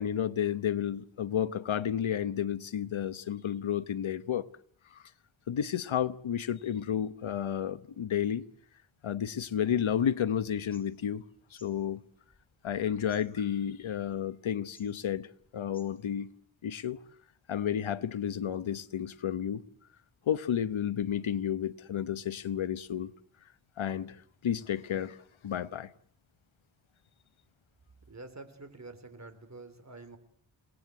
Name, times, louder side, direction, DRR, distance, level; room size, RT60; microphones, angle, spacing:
voice 1, 0.0-4.5 4.9-5.0 5.5-8.4 9.0-11.2 11.5-12.0 12.6-16.3 16.6-17.0 17.5-19.6 20.3-23.1 23.8-25.2 25.4-25.9, left 9 dB, 90° left, 1.0 m, -31 dB
sound 1, 10.6-16.3, equal, 10° left, 5.4 m, -60 dB
voice 2, 28.1-30.2, right 3 dB, 35° right, 3.6 m, -47 dB
29.5 x 19.0 x 8.2 m
wide cardioid pair, 110°, 46 cm